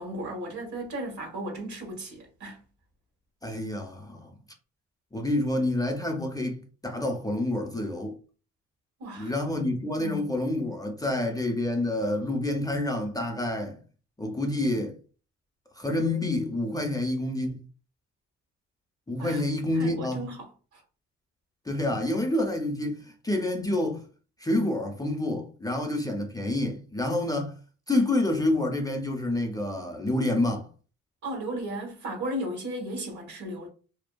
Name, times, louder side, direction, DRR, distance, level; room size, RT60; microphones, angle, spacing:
voice 1, 0.0-2.6 9.0-9.3 10.0-10.2 19.2-19.4 19.7-20.8 31.2-33.7, right 1 dB, 70° right, 1.1 m, -35 dB
voice 2, 3.4-4.3 5.1-8.2 9.2-13.8 14.2-15.0 15.8-17.6 19.1-20.2 21.7-24.0 24.4-27.6 27.9-30.7, left 1 dB, 15° left, 0.4 m, -28 dB
2.5 x 2.3 x 2.2 m
cardioid pair, 90°, 30 cm